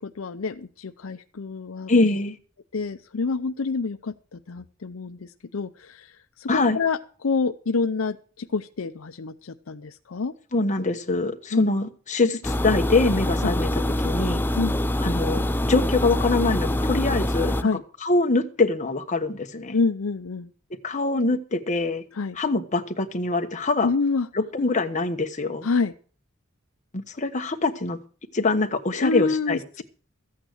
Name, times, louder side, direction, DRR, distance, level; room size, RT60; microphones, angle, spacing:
voice 1, 0.0-1.9 2.7-10.3 11.5-11.7 13.4-13.5 14.5-14.8 17.6-17.8 19.7-20.5 22.1-22.4 23.8-24.3 25.6-25.9 28.9-29.8, left 4 dB, 80° left, 10 dB, 0.6 m, -27 dB
voice 2, 1.9-2.3 6.5-6.8 10.5-13.7 14.0-14.4 15.0-17.6 18.0-19.8 20.8-22.0 22.4-23.9 24.3-25.7 26.9-28.0 28.3-29.8, left 3 dB, 35° left, 5 dB, 1.2 m, -24 dB
sound 1, 12.4-17.6, left 1 dB, 10° left, 0.6 m, -25 dB
14.0 x 8.8 x 6.5 m, 0.41 s
head